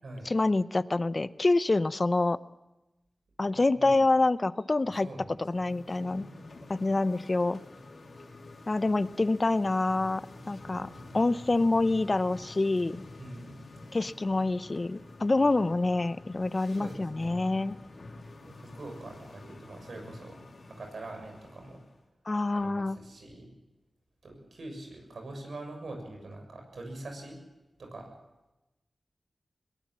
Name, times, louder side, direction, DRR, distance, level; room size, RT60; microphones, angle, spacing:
voice 1, 0.3-2.4 3.4-5.1 5.5-6.3 6.7-7.6 8.7-10.9 11.1-13.0 13.9-17.8 22.3-23.0, left 2 dB, 40° left, 15 dB, 0.7 m, -26 dB
voice 2, 3.5-4.0 4.9-5.7 13.2-13.6 16.7-17.4 18.4-21.8 22.5-23.5 24.2-27.4 27.8-28.1, right 2 dB, 85° right, 3 dB, 6.8 m, -44 dB
sound 1, 5.4-22.0, left 2 dB, 70° left, 3.1 m, -48 dB
22.0 x 18.5 x 7.5 m, 1.0 s
wide cardioid pair, 65°, 0 cm